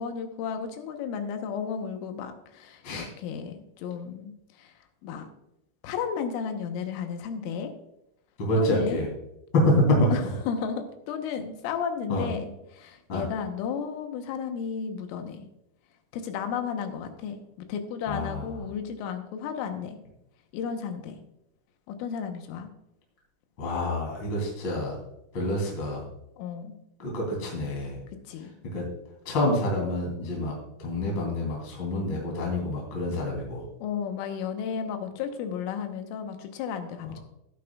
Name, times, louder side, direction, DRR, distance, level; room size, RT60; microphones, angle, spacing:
voice 1, 0.0-4.7 5.0-5.3 5.8-7.7 8.6-9.0 9.7-9.8 10.1-15.5 16.1-20.0 20.5-21.2 21.9-22.7 26.4-26.8 28.3-28.5 33.8-37.2, left 7 dB, 85° left, 6 dB, 3.6 m, -33 dB
voice 2, 8.4-9.1 9.5-10.1 12.1-12.2 13.1-13.2 18.1-18.4 23.6-24.9 25.3-26.0 27.0-28.0 28.6-28.9 29.2-33.6, left 1 dB, 30° left, -2 dB, 3.1 m, -27 dB
16.5 x 8.7 x 2.3 m, 0.84 s
omnidirectional pair, 5.6 m